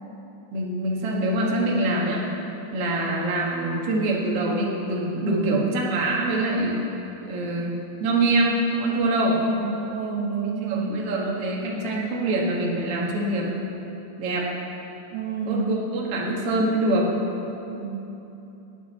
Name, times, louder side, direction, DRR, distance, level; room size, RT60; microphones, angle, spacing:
voice 1, 0.5-2.3 2.7-6.8 7.2-9.4 10.4-13.6 14.2-14.5 15.5-17.1, right 1 dB, 50° right, -3 dB, 2.0 m, -25 dB
voice 2, 5.2-5.8 9.1-11.0 15.1-15.8 17.8-18.1, right 5 dB, 80° right, 2 dB, 2.5 m, -28 dB
19.0 x 8.4 x 4.2 m, 3.0 s
omnidirectional pair, 4.2 m